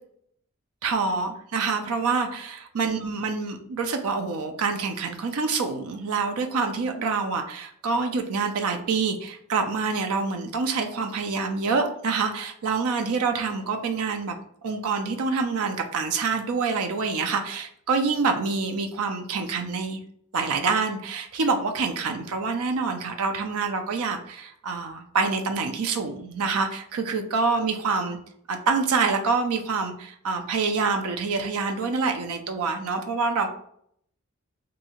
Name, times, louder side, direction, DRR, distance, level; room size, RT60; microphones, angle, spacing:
voice 1, 0.8-14.4 14.6-20.0 20.3-28.2 28.5-33.5, right 4 dB, 70° right, 5 dB, 0.5 m, -26 dB
2.7 x 2.6 x 4.1 m, 0.67 s
head